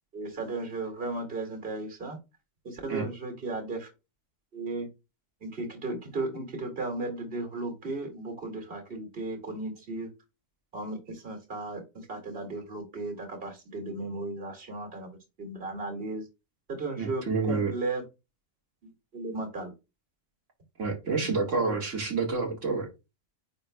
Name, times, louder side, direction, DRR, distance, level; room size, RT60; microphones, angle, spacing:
voice 1, 0.1-2.2 2.6-3.9 4.5-4.9 5.4-10.1 10.7-11.8 12.1-15.1 15.4-16.2 16.7-18.0 18.8-19.7 21.2-21.8, right 2 dB, 50° right, 2.4 m, -35 dB
voice 2, 17.0-17.7 20.8-22.9, right 4 dB, 85° right, 2.0 m, -28 dB
9.6 x 5.1 x 2.2 m
omnidirectional pair, 1.3 m